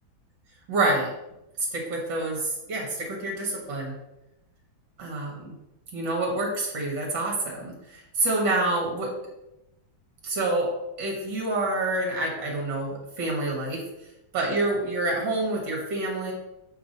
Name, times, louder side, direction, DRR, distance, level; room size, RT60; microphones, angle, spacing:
voice 1, 0.7-1.1 1.6-3.9 5.0-5.5 5.9-9.1 10.2-10.7 11.0-13.8 14.3-16.3, right 2 dB, 65° right, -2 dB, 2.4 m, -27 dB
7.4 x 5.7 x 4.2 m, 0.92 s
omnidirectional pair, 2.2 m